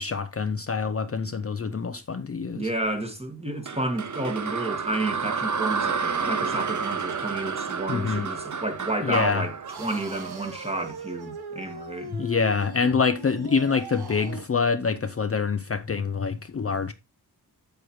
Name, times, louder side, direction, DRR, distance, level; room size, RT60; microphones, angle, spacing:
voice 1, 0.0-2.7 7.9-8.3 9.0-9.4 12.1-16.9, left 5 dB, 35° left, 0.6 m, -26 dB
voice 2, 2.5-12.2, right 2 dB, 15° right, 1.7 m, -31 dB
sound 1, 3.7-10.8, right 5 dB, 50° right, 0.8 m, -30 dB
sound 2, 9.6-14.6, right 4 dB, 70° right, 1.2 m, -39 dB
7.8 x 7.7 x 3.0 m
wide cardioid pair, 80°, 39 cm